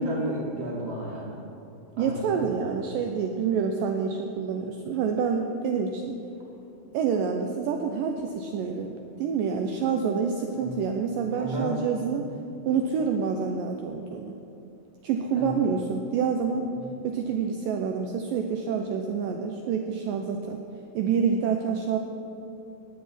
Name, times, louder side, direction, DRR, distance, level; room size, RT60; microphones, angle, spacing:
voice 1, 0.0-1.3 2.0-2.7 10.5-10.8 11.3-11.8 12.1-12.4 15.3-15.5, right 1 dB, 20° right, -5 dB, 2.3 m, -33 dB
voice 2, 2.0-6.2 6.9-12.3 12.7-14.4 15.0-16.7 17.0-20.6 20.9-22.0, right 6 dB, 80° right, 4 dB, 2.1 m, -27 dB
15.5 x 10.5 x 4.3 m, 2.8 s
omnidirectional pair, 4.4 m